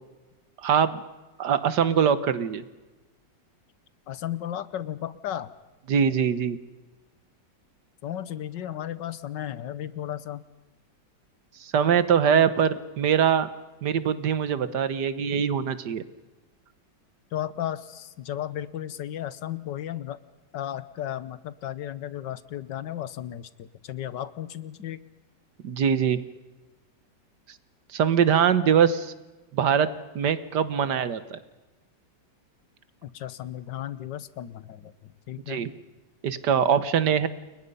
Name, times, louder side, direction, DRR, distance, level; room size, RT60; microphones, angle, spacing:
voice 1, 0.6-1.0 1.4-2.6 5.9-6.6 11.6-13.5 13.8-16.0 25.6-26.2 27.9-29.1 29.5-29.9 30.2-31.4 35.5-35.7 36.2-37.3, right 7 dB, 70° right, 13 dB, 1.7 m, -23 dB
voice 2, 4.1-5.5 8.0-10.4 17.3-20.2 20.5-25.0 33.0-35.6, left 11 dB, 75° left, 16 dB, 1.6 m, -34 dB
29.5 x 22.0 x 5.5 m, 1.2 s
omnidirectional pair, 2.0 m